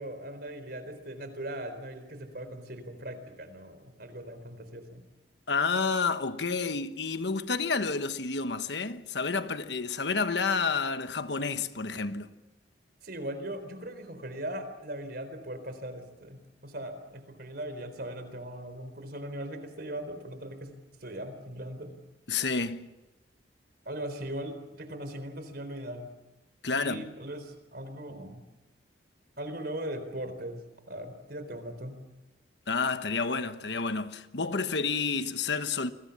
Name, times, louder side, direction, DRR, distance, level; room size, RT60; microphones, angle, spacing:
voice 1, 0.0-5.0 13.0-20.7 21.0-21.9 23.8-26.1 26.8-28.4 29.4-30.6 30.9-32.0, right 1 dB, 55° right, 4.1 m, -39 dB
voice 2, 5.5-12.3 22.3-22.9 26.6-27.1 32.7-35.9, left 4 dB, 65° left, 1.2 m, -30 dB
29.0 x 20.5 x 7.2 m
head